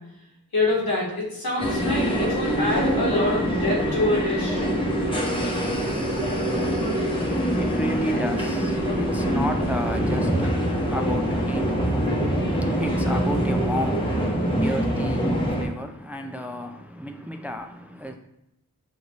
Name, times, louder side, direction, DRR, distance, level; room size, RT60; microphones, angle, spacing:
voice 1, 0.5-4.6, left 2 dB, 85° left, 1.6 m, -25 dB
sound 1, 1.6-15.6, equal, 15° left, 1.0 m, -24 dB
voice 2, 7.1-18.2, equal, 5° right, 0.4 m, -32 dB
6.5 x 2.6 x 3.0 m
wide cardioid pair, 45°, 35 cm